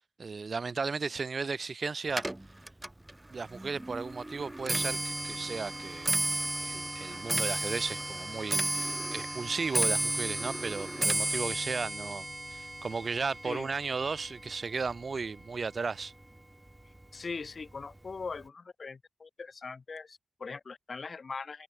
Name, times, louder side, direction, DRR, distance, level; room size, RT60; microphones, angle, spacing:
voice 1, 0.2-2.2 3.3-16.1, right 4 dB, 55° right, 2.9 m, -35 dB
Clock, 2.1-15.4 15.8-16.2 17.0-17.1 17.4-17.8 18.1-18.2, right 1 dB, 15° right, 0.6 m, -33 dB
voice 2, 17.1-21.6, left 4 dB, 55° left, 5.9 m, -41 dB
wide cardioid pair, 140°, 0 cm